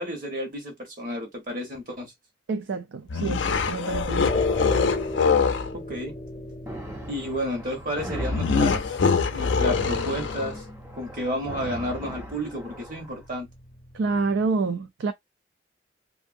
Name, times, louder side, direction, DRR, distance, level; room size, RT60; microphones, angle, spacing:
voice 1, 0.0-2.1 5.7-6.1 7.1-8.8 9.3-10.6 11.0-13.5, equal, 45° right, 1.2 m, -31 dB
voice 2, 2.5-4.4 13.9-15.1, right 4 dB, 80° right, 0.4 m, -28 dB
sound 1, 3.1-5.7 8.3-10.6, left 5 dB, 85° left, 0.4 m, -24 dB
sound 2, 4.3-14.5, left 3 dB, 35° left, 0.6 m, -35 dB
sound 3, 6.7-13.1, equal, 15° right, 0.5 m, -37 dB
2.7 x 2.5 x 2.5 m
head